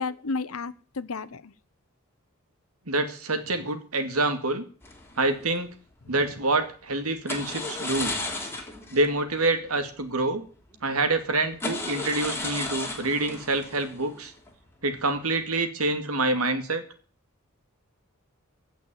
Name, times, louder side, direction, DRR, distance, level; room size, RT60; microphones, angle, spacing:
voice 1, 0.0-1.5 6.1-6.2, left 4 dB, 80° left, 0.9 m, -32 dB
voice 2, 2.9-4.6 5.2-5.7 6.1-8.2 8.9-10.4 10.8-14.3 14.8-16.8, right 2 dB, 85° right, 2.3 m, -26 dB
sound 1, 4.8-5.6 7.3-9.1 9.3-9.4 9.9-10.0 10.7-10.8 11.5-14.7 15.0-15.4, left 2 dB, 10° left, 3.0 m, -34 dB
16.0 x 6.1 x 9.0 m
head